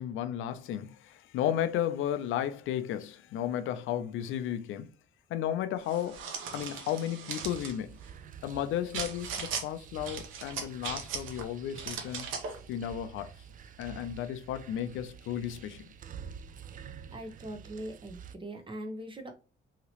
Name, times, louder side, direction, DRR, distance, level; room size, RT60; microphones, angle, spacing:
voice 1, 0.0-4.9 5.3-6.2 6.5-7.9 8.4-12.3 12.7-13.3 13.8-15.8, left 10 dB, 85° left, 0.4 m, -33 dB
sound 1, 5.9-7.7 8.9-9.7 10.1-11.4 11.7-12.6, right 6 dB, 90° right, 0.7 m, -38 dB
sound 2, 7.4-18.3, right 8 dB, 45° right, 0.4 m, -48 dB
voice 2, 17.1-19.3, right 1 dB, 25° right, 0.8 m, -41 dB
2.9 x 2.9 x 2.8 m
cardioid pair, 90°, 20 cm